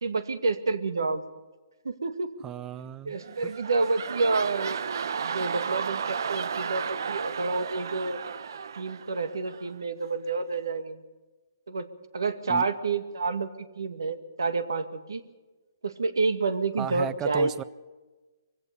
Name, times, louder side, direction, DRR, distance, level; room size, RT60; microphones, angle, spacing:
voice 1, 0.0-1.2 1.8-2.3 3.0-4.8 5.2-8.2 8.8-11.0 11.7-11.9 12.1-13.5 13.8-15.2 15.8-17.5, right 3 dB, 90° right, 10 dB, 2.1 m, -29 dB
voice 2, 2.4-3.2 3.4-3.5 12.5-12.6 16.8-17.6, right 10 dB, 15° right, 19 dB, 0.5 m, -35 dB
sound 1, 3.2-9.8 10.3-10.4, right 6 dB, 65° right, 0.9 m, -33 dB
23.0 x 16.5 x 7.0 m, 1.2 s
hypercardioid pair, 155°, 2 cm